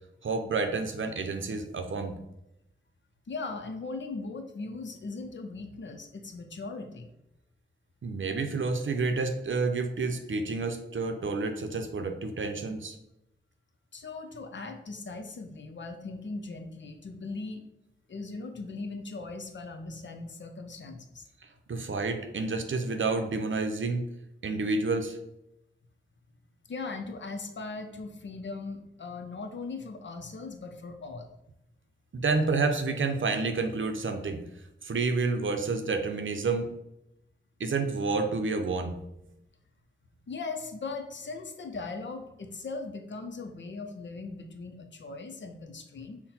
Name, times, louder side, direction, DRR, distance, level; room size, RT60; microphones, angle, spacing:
voice 1, 0.2-2.2 8.0-12.9 21.7-24.0 24.4-25.2 32.1-34.4 34.8-36.7 37.6-38.9, right 3 dB, 80° right, 6 dB, 0.6 m, -29 dB
voice 2, 3.3-7.1 13.9-17.6 18.1-21.3 26.7-31.3 39.3-39.4 40.3-46.2, left 3 dB, 65° left, 6 dB, 0.6 m, -39 dB
5.7 x 2.2 x 4.2 m, 0.85 s
wide cardioid pair, 70°, 20 cm